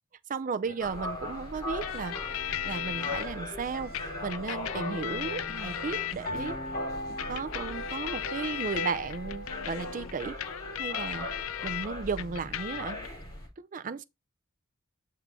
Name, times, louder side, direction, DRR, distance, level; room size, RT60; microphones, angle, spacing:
voice 1, 0.3-2.3 2.6-6.6 7.1-11.3 11.6-13.0 13.6-14.0, right 5 dB, 40° right, 0.4 m, -35 dB
sound 1, 0.6-10.0, equal, 45° left, 1.3 m, -41 dB
sound 2, 0.8-13.5, left 1 dB, 15° left, 4.1 m, -40 dB
sound 3, 1.8-3.3 3.9-6.5 7.2-11.9 12.2-13.1, left 12 dB, 85° left, 0.4 m, -36 dB
6.8 x 3.7 x 4.7 m
head